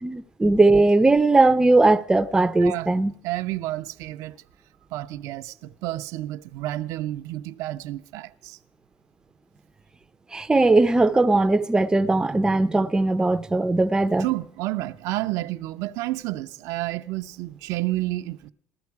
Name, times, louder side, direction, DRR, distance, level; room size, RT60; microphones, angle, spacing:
voice 1, 0.0-3.1 10.3-14.3, right 2 dB, 10° right, 0.6 m, -19 dB
voice 2, 3.2-4.4 4.9-8.6 14.2-18.5, right 16 dB, 75° right, 0.6 m, -30 dB
15.5 x 12.5 x 4.7 m
supercardioid pair, 100°, 6 cm